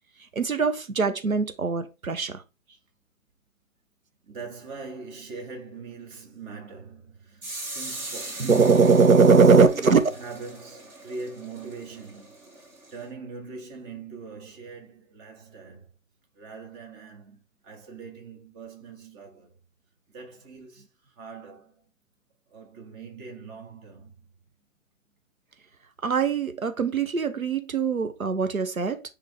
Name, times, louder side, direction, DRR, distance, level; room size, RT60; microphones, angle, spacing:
voice 1, 0.3-2.4 8.4-10.0 26.0-29.0, right 5 dB, 85° right, 0.9 m, -21 dB
voice 2, 4.3-8.8 9.2-12.3 12.9-15.9 16.4-19.6 20.1-20.9 21.2-21.9 22.5-24.3, right 4 dB, 25° right, 1.8 m, -41 dB
sound 1, 7.4-13.1, right 2 dB, 5° right, 0.5 m, -40 dB
9.3 x 3.7 x 3.4 m
figure-of-eight pair, 125°, 40 cm